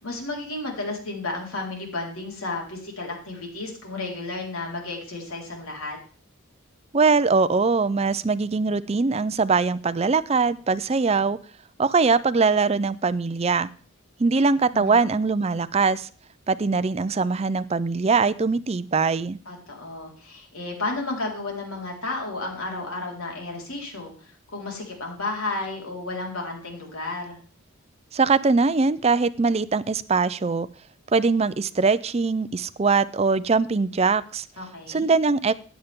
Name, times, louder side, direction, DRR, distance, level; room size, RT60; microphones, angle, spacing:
voice 1, 0.0-6.0 14.7-15.1 19.5-27.4 34.6-35.1, left 2 dB, 85° left, 0 dB, 4.4 m, -32 dB
voice 2, 6.9-11.4 11.8-13.7 14.2-16.1 16.5-19.4 28.1-30.7 31.1-34.4 34.9-35.5, right 4 dB, 30° right, 16 dB, 0.4 m, -22 dB
15.5 x 10.0 x 3.7 m, 0.42 s
head